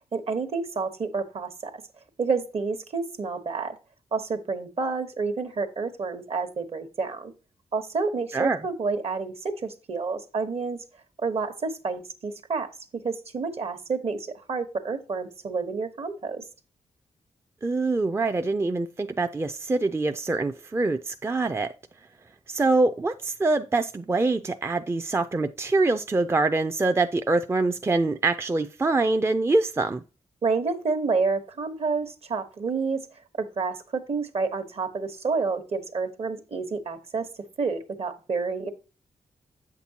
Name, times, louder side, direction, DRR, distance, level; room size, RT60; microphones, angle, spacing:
voice 1, 0.1-1.7 2.2-3.8 4.1-7.3 7.7-10.8 11.2-12.7 13.0-16.4 30.4-33.0 33.4-37.3 37.6-38.7, right 4 dB, 55° right, 1.1 m, -29 dB
voice 2, 17.6-21.7 22.5-30.0, right 3 dB, 20° right, 0.4 m, -24 dB
8.1 x 5.9 x 2.8 m
cardioid pair, 60°, 13 cm